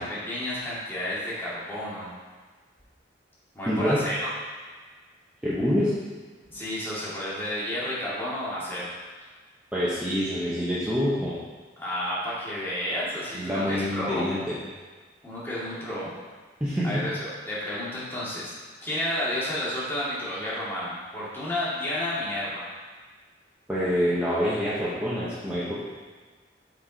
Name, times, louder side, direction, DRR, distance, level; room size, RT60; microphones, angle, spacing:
voice 1, 0.0-2.1 3.5-4.3 6.5-8.9 11.8-14.2 15.2-16.1 16.8-18.5 18.8-22.6, left 1 dB, 15° left, -9 dB, 2.2 m, -31 dB
voice 2, 3.7-4.0 5.4-5.9 9.7-11.3 13.3-14.6 16.6-17.0 23.7-25.8, equal, 5° right, -10 dB, 1.1 m, -26 dB
7.4 x 4.7 x 4.0 m, 1.4 s
head